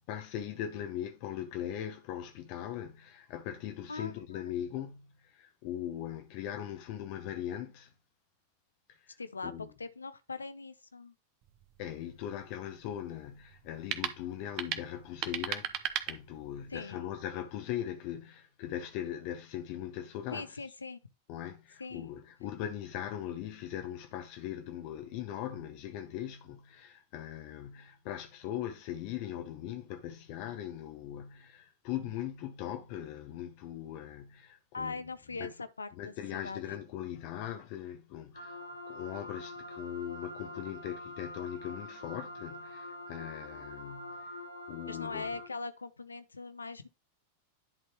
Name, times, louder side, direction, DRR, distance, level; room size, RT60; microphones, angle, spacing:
voice 1, 0.1-7.9 8.9-9.2 9.4-9.7 11.8-20.5 21.3-35.0 35.4-35.5 36.0-44.3 44.7-45.3, left 11 dB, 45° left, 0.8 m, -40 dB
voice 2, 3.9-4.5 9.2-11.1 16.7-17.0 20.3-21.0 21.8-22.1 34.7-36.6 44.9-46.9, left 4 dB, 75° left, 0.7 m, -41 dB
sound 1, 11.4-16.8, right 11 dB, 40° right, 0.8 m, -39 dB
sound 2, 38.3-45.5, left 1 dB, 90° right, 1.3 m, -45 dB
10.5 x 4.4 x 3.0 m
figure-of-eight pair, 90°, 0 cm